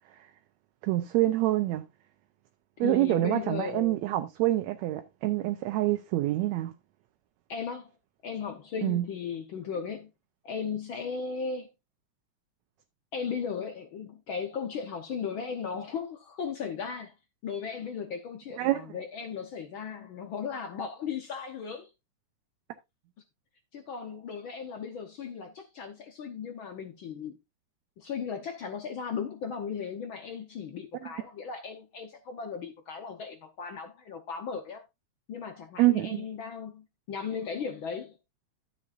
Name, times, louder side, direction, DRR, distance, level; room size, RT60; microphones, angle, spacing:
voice 1, 0.8-1.8 2.8-6.7 8.8-9.1 18.6-18.9 31.0-31.1 35.8-36.2, right 16 dB, 75° right, 1.9 m, -26 dB
voice 2, 2.8-4.1 7.5-7.9 8.2-10.1 10.4-11.7 13.1-17.1 17.4-21.9 23.7-27.3 28.0-34.8 35.3-38.2, left 6 dB, 65° left, 1.3 m, -36 dB
12.5 x 7.7 x 2.5 m
omnidirectional pair, 3.3 m